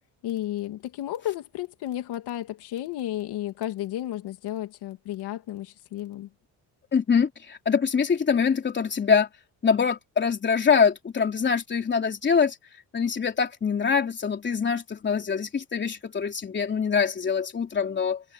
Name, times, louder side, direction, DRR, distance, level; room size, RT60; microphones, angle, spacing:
voice 1, 0.2-6.3, left 13 dB, 80° left, 2.6 m, -33 dB
voice 2, 6.9-9.3 9.6-12.5 12.9-18.2, left 6 dB, 30° left, 3.5 m, -24 dB
cardioid pair, 155°, 39 cm